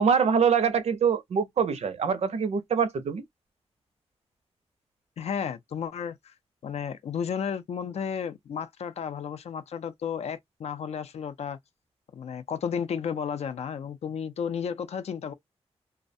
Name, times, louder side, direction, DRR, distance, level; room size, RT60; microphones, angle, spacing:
voice 1, 0.0-3.2, right 6 dB, 70° right, 0.5 m, -24 dB
voice 2, 5.2-6.3 6.6-11.6 12.1-15.3, left 7 dB, 75° left, 0.4 m, -33 dB
2.4 x 2.0 x 2.6 m
wide cardioid pair, 135°, 11 cm